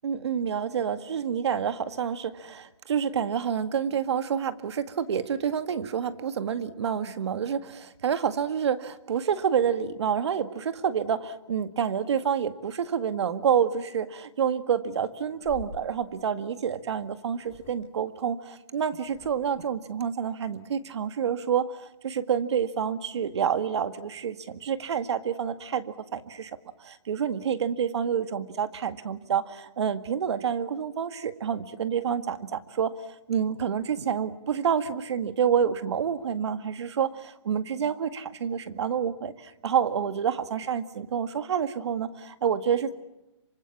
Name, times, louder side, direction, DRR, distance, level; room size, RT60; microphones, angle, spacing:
voice 1, 0.0-26.5 26.8-33.0 33.3-42.9, right 7 dB, 60° right, 11 dB, 2.0 m, -28 dB
sound 1, 15.4-15.8 16.9-17.0 17.4-17.9 19.0-19.7, left 6 dB, 25° left, 3.9 m, -46 dB
27.0 x 25.0 x 7.3 m, 0.93 s
hypercardioid pair, 150°, 16 cm